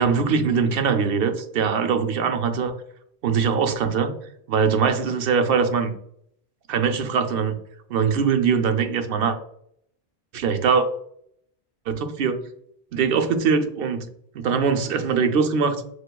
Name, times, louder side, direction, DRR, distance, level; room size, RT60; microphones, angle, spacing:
voice 1, 0.0-2.8 3.2-4.1 4.5-5.9 6.7-7.6 7.9-9.4 10.3-10.9 11.9-12.4 12.9-14.1 14.3-15.8, right 6 dB, 65° right, 7 dB, 0.7 m, -22 dB
6.6 x 2.4 x 2.2 m, 0.70 s
omnidirectional pair, 1.1 m